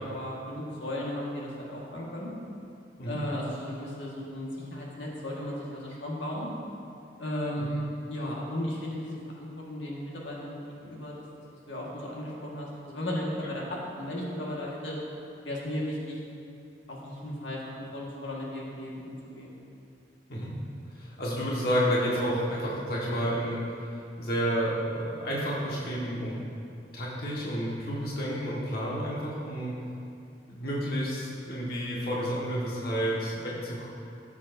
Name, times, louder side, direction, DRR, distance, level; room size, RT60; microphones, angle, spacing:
voice 1, 0.0-2.3 3.0-6.5 7.2-11.1 11.7-15.0 15.4-16.2 16.9-19.5 29.0-29.2, left 1 dB, 80° left, -4 dB, 1.7 m, -35 dB
voice 2, 20.9-26.4 26.9-29.7 30.5-33.9, equal, 55° left, -5 dB, 1.5 m, -30 dB
14.5 x 7.2 x 2.7 m, 2.6 s
head